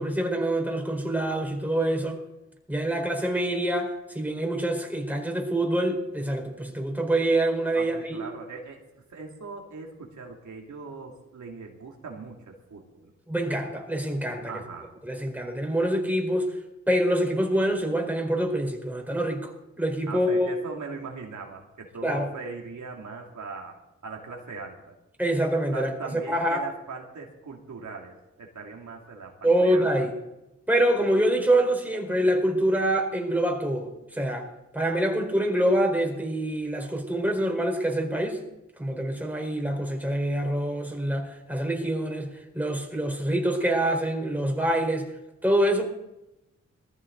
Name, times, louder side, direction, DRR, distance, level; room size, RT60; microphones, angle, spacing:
voice 1, 0.0-2.2 2.7-8.3 13.3-14.5 15.0-16.5 16.9-19.5 19.8-20.5 22.0-22.3 25.2-26.6 29.4-30.2 30.7-34.5 34.7-38.4 38.8-45.1 45.4-45.8, right 1 dB, 5° right, 2 dB, 4.5 m, -25 dB
voice 2, 7.7-8.8 9.1-13.1 14.4-14.9 20.1-23.8 24.0-24.9 25.7-30.1, right 4 dB, 75° right, 0 dB, 2.6 m, -40 dB
19.5 x 14.5 x 4.0 m, 0.94 s
cardioid pair, 50°, 29 cm